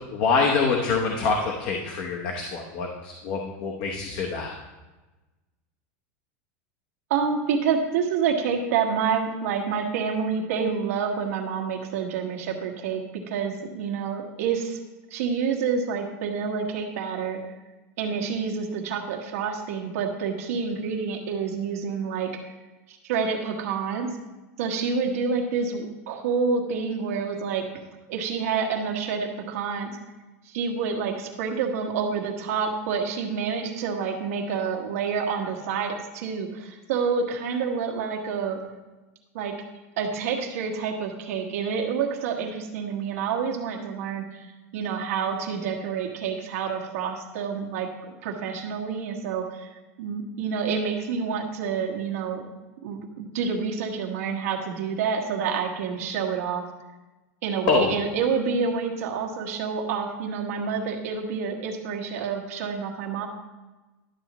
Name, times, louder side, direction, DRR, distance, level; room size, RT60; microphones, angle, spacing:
voice 1, 0.1-4.6 57.7-57.9, left 4 dB, 45° left, 1 dB, 0.9 m, -25 dB
voice 2, 7.1-14.8 15.1-17.4 18.0-22.4 22.9-24.1 24.6-27.6 28.1-30.0 30.4-38.6 39.3-39.5 40.0-47.9 48.2-49.7 50.0-52.4 52.8-56.6 57.4-63.3, right 6 dB, 75° right, 0 dB, 1.4 m, -28 dB
11.5 x 7.1 x 3.0 m, 1.2 s
supercardioid pair, 160°, 8 cm